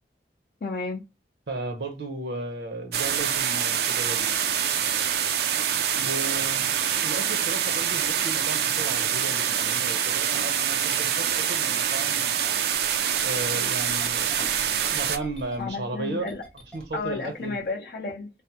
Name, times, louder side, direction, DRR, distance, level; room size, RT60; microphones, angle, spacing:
voice 1, 0.6-1.0 15.6-16.4 16.9-18.3, left 3 dB, 55° left, 0.4 m, -32 dB
voice 2, 1.5-4.4 5.9-12.6 13.2-14.4 14.9-16.4 16.7-17.6, right 2 dB, 75° right, 0.7 m, -35 dB
sound 1, 2.9-15.2, right 9 dB, 60° right, 0.3 m, -25 dB
Engine starting, 12.7-17.7, left 1 dB, 5° left, 0.6 m, -46 dB
3.3 x 2.0 x 2.8 m
head